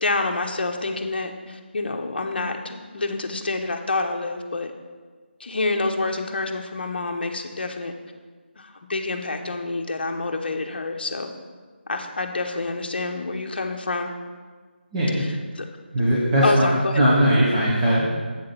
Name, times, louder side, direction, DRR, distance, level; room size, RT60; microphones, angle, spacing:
voice 1, 0.0-4.7 5.4-7.9 8.6-11.3 11.9-14.1 15.2-15.7 16.4-17.0, left 3 dB, 55° left, 4 dB, 0.9 m, -28 dB
voice 2, 14.9-15.2 15.9-16.7 17.0-18.2, equal, 30° right, -9 dB, 1.6 m, -19 dB
8.0 x 3.8 x 6.8 m, 1.5 s
figure-of-eight pair, 160°, 6 cm